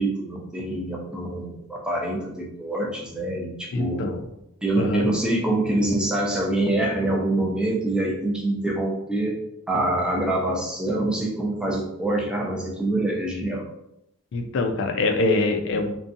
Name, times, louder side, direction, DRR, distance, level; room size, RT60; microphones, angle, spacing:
voice 1, 0.0-4.0 4.6-9.4 9.7-13.6, right 1 dB, 5° right, -2 dB, 0.4 m, -25 dB
voice 2, 3.7-4.2 4.8-5.1 14.3-16.0, left 2 dB, 60° left, 5 dB, 0.3 m, -24 dB
2.5 x 2.2 x 2.6 m, 0.82 s
head